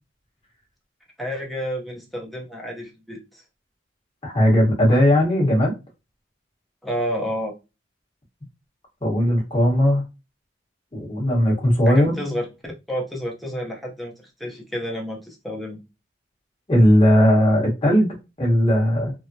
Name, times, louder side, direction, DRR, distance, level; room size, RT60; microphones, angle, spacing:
voice 1, 1.2-3.4 6.8-7.5 11.9-12.5 12.9-15.8, equal, ahead, 0.6 m, -30 dB
voice 2, 4.2-5.7 9.0-10.0 10.9-12.2 16.7-19.1, equal, 30° left, 1.2 m, -18 dB
3.1 x 2.1 x 2.6 m
head